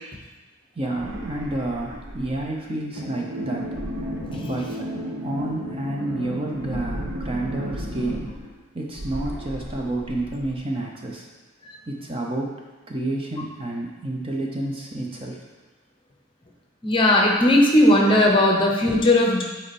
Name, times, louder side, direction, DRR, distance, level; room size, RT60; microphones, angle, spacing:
voice 1, 0.7-3.7 4.4-4.7 5.2-8.2 8.7-11.3 11.9-12.6 12.9-15.4, right 1 dB, 25° right, -1 dB, 0.7 m, -29 dB
sound 1, 0.8-2.7 3.6-5.1 6.5-8.6 8.9-10.6, equal, 60° right, 1.0 m, -37 dB
sound 2, 3.0-8.3, equal, 85° right, 1.4 m, -33 dB
voice 2, 16.8-19.4, left 1 dB, 25° left, 0 dB, 0.9 m, -17 dB
8.3 x 4.3 x 4.3 m, 1.2 s
head